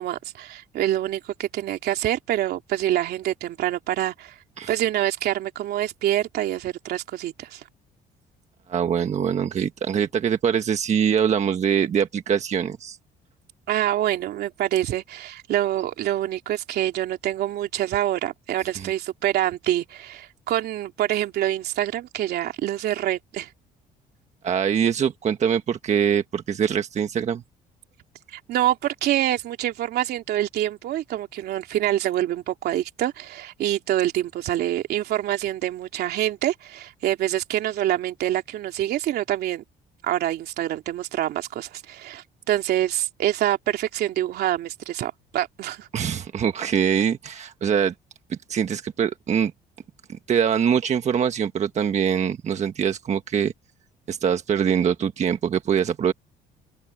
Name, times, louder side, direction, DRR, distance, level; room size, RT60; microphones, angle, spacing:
voice 1, 0.0-4.3 4.7-7.6 13.7-23.5 28.3-39.6 40.0-45.9, right 13 dB, 70° right, 3.1 m, -26 dB
voice 2, 8.7-13.0 18.7-18.9 24.4-27.4 45.9-47.9 48.3-49.5 50.1-53.5 54.1-56.1, right 8 dB, 40° right, 1.4 m, -23 dB
open air
cardioid pair, 110°, 17 cm